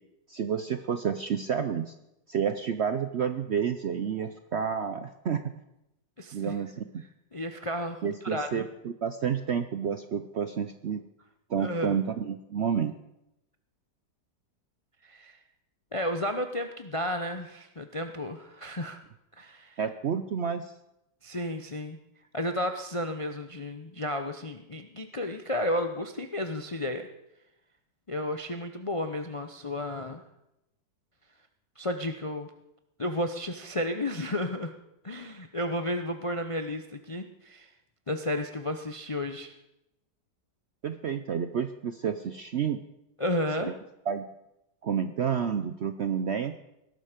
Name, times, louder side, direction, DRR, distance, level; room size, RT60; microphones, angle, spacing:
voice 1, 0.3-1.9 2.3-5.4 6.3-7.0 8.0-11.0 11.5-12.9 19.8-20.7 40.8-42.8 43.6-43.7 44.1-44.2 44.8-46.6, right 7 dB, 60° right, 10 dB, 0.7 m, -30 dB
voice 2, 6.2-6.5 7.3-8.7 11.6-12.0 15.0-15.4 15.9-19.0 19.4-19.8 21.2-22.0 22.3-27.1 28.1-30.2 31.8-32.5 33.0-34.7 35.0-37.7 38.1-39.5 43.2-43.7, left 1 dB, 40° left, 7 dB, 0.4 m, -32 dB
18.5 x 12.0 x 5.1 m, 0.87 s
omnidirectional pair, 1.8 m